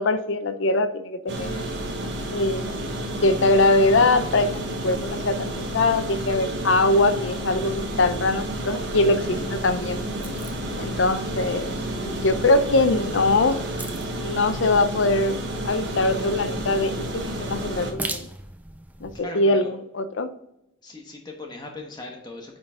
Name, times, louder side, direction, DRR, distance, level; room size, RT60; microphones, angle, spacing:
voice 1, 0.0-1.7 2.3-2.7 3.2-10.0 10.8-11.7 12.0-13.6 14.2-15.4 15.6-18.3 19.0-20.3, left 2 dB, 65° left, 10 dB, 0.6 m, -22 dB
sound 1, 1.3-17.9, right 1 dB, 55° right, 1.1 m, -30 dB
sound 2, 8.7-19.2, right 2 dB, 10° right, 0.3 m, -42 dB
voice 2, 19.2-19.7 20.8-22.6, left 2 dB, 20° left, 1 dB, 1.2 m, -38 dB
8.9 x 3.8 x 3.7 m, 0.84 s
head